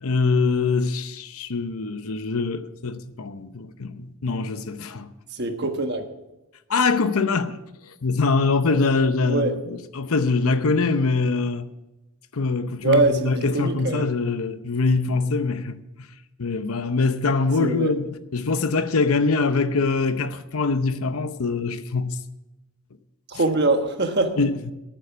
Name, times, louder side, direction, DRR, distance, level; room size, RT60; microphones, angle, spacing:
voice 1, 0.0-5.1 6.7-7.6 7.8-11.7 12.3-16.1 16.4-22.2 24.4-24.7, left 4 dB, 80° left, 0.8 m, -23 dB
voice 2, 5.3-6.1 9.2-9.5 12.8-14.1 17.6-17.9 23.3-24.4, right 2 dB, 50° right, 1.3 m, -23 dB
12.0 x 9.0 x 6.0 m
head